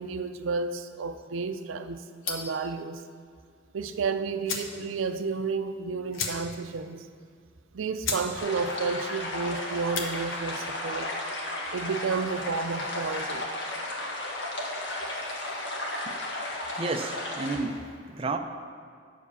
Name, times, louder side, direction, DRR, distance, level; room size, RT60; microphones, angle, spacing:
voice 1, 0.0-3.0 3.7-7.0 7.7-11.1 11.7-13.5, right 4 dB, 85° right, 9 dB, 0.5 m, -31 dB
sound 1, 2.2-2.6 3.9-4.0 4.4-4.8 5.1-5.2 5.5-5.6 6.1-6.7 7.1-7.2 7.7-7.8 8.0-8.3 8.6-9.0 9.7-10.1, left 5 dB, 80° left, 1.1 m, -33 dB
sound 2, 8.4-17.6, left 1 dB, 65° left, 1.6 m, -34 dB
voice 2, 16.8-17.8 18.1-18.4, right 3 dB, 30° right, 4 dB, 0.5 m, -31 dB
9.4 x 4.9 x 6.8 m, 2.3 s
head